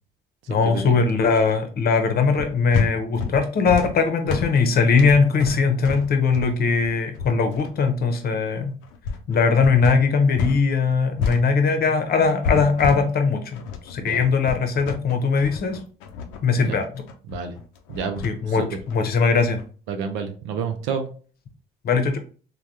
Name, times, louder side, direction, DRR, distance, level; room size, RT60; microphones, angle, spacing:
voice 1, 0.5-8.7 9.3-13.6 13.8-15.8 16.4-17.0 18.2-19.6 21.8-22.2, left 5 dB, 55° left, 7 dB, 0.7 m, -20 dB
sound 1, 2.3-10.6 10.9-19.6, left 6 dB, 80° left, 0.5 m, -30 dB
voice 2, 17.3-17.6 17.9-18.8 19.9-21.1, right 6 dB, 80° right, 6 dB, 0.5 m, -29 dB
3.4 x 2.2 x 2.6 m, 0.39 s
supercardioid pair, 65°, 19 cm